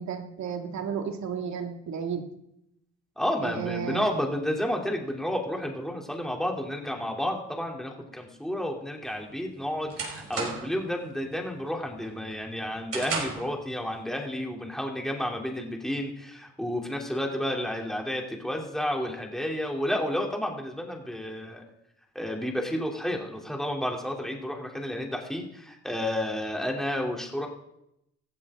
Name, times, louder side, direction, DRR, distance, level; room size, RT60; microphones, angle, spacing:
voice 1, 0.0-2.2 3.4-4.0, right 7 dB, 65° right, 4 dB, 2.3 m, -33 dB
voice 2, 3.2-21.6 22.1-27.5, left 1 dB, ahead, 0 dB, 3.3 m, -31 dB
sound 1, 9.1-10.9 11.3-11.6 12.0-13.6, right 4 dB, 50° right, 6.0 m, -34 dB
15.5 x 15.0 x 3.8 m, 0.81 s
cardioid pair, 90°, 30 cm